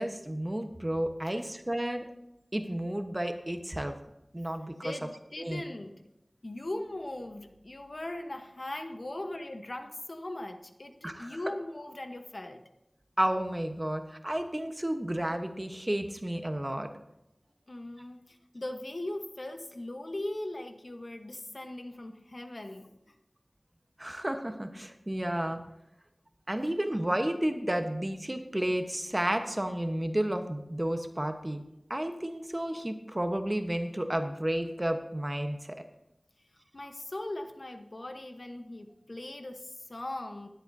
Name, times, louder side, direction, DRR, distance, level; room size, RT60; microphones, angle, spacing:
voice 1, 0.0-2.1 2.5-3.9 4.3-4.9 5.4-5.6 11.0-11.4 13.2-16.9 24.0-25.6 26.5-31.6 31.9-35.8, right 1 dB, 25° right, 6 dB, 1.0 m, -32 dB
voice 2, 4.8-6.0 6.4-12.6 17.7-22.9 36.7-40.5, left 1 dB, 60° left, 5 dB, 1.0 m, -39 dB
20.5 x 8.0 x 2.7 m, 0.89 s
wide cardioid pair, 55°, 0 cm